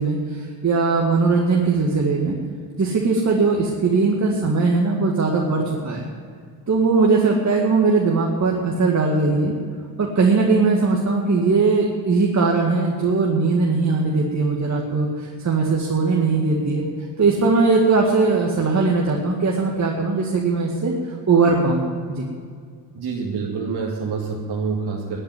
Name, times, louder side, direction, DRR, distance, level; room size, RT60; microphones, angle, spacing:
voice 1, 0.0-2.3 2.8-6.1 6.7-9.5 10.0-16.8 17.2-22.3, right 4 dB, 35° right, -1 dB, 2.1 m, -20 dB
voice 2, 22.9-25.2, right 5 dB, 50° right, -3 dB, 2.4 m, -27 dB
11.5 x 8.9 x 9.7 m, 2.1 s
hypercardioid pair, 55°, 49 cm